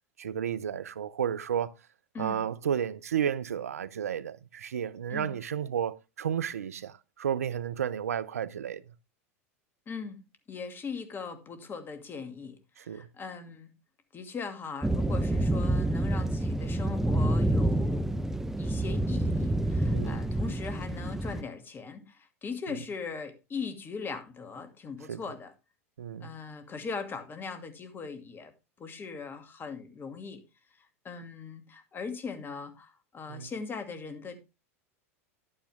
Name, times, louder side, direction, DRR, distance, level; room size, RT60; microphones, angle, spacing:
voice 1, 0.2-1.7 2.2-8.8 12.8-13.1 19.9-20.2 25.1-25.2 26.0-26.3 33.3-33.5, right 8 dB, 90° right, 0.6 m, -32 dB
voice 2, 2.1-2.5 5.1-5.3 9.9-10.2 10.5-13.7 14.1-18.1 18.6-25.5 26.2-28.5 28.8-30.4 31.0-34.4, left 5 dB, 25° left, 2.4 m, -40 dB
sound 1, 14.8-21.4, right 1 dB, 5° right, 0.8 m, -28 dB
11.5 x 8.7 x 3.5 m
hypercardioid pair, 95°, 8 cm